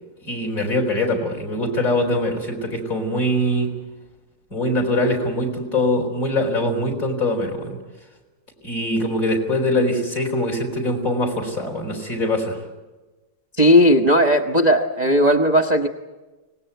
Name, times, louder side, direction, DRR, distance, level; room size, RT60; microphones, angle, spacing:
voice 1, 0.2-3.7 4.5-7.8 8.6-12.6, left 1 dB, 45° left, 1 dB, 5.0 m, -23 dB
voice 2, 13.6-15.9, equal, 25° right, 4 dB, 1.0 m, -16 dB
25.0 x 19.5 x 9.3 m, 1.2 s
omnidirectional pair, 2.0 m